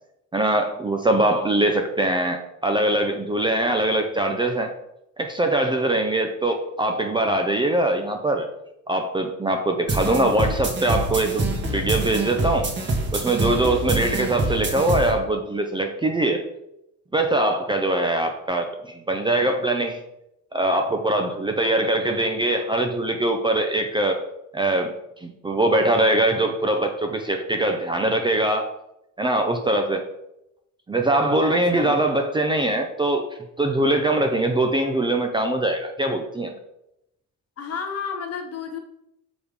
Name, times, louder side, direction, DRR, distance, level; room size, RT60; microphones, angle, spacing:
voice 1, 0.3-4.7 5.2-8.5 8.9-12.7 13.1-16.4 17.1-20.0 20.5-24.2 24.5-24.9 25.2-28.7 29.2-30.1 30.9-33.3 33.6-36.5, right 1 dB, 15° right, 4 dB, 0.5 m, -22 dB
sound 1, 9.9-15.1, right 2 dB, 35° right, 1.5 m, -26 dB
voice 2, 13.7-14.1 31.5-32.1 37.6-38.8, left 6 dB, 45° left, 4 dB, 1.3 m, -33 dB
6.8 x 5.0 x 5.2 m, 0.84 s
cardioid pair, 160°, 34 cm